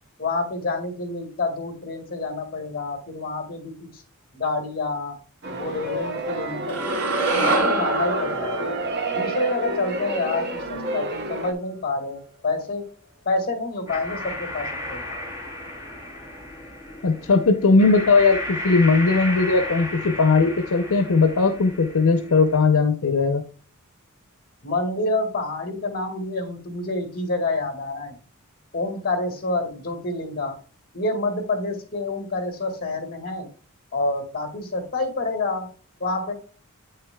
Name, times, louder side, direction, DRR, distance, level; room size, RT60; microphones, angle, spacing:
voice 1, 0.2-4.0 4.3-5.2 5.5-7.0 7.4-8.8 9.1-12.8 13.3-15.0 24.6-28.2 28.7-30.6 30.9-33.5 33.9-35.7 36.0-36.3, left 2 dB, 40° left, 4 dB, 2.0 m, -28 dB
sound 1, 5.4-11.5, right 2 dB, 50° right, 0.8 m, -30 dB
sound 2, 6.7-10.9, right 2 dB, 75° right, 3.0 m, -26 dB
sound 3, 13.9-22.6, left 1 dB, 15° right, 2.8 m, -34 dB
voice 2, 17.0-23.4, left 4 dB, 75° left, 7 dB, 0.7 m, -18 dB
8.6 x 6.6 x 2.3 m, 0.40 s
head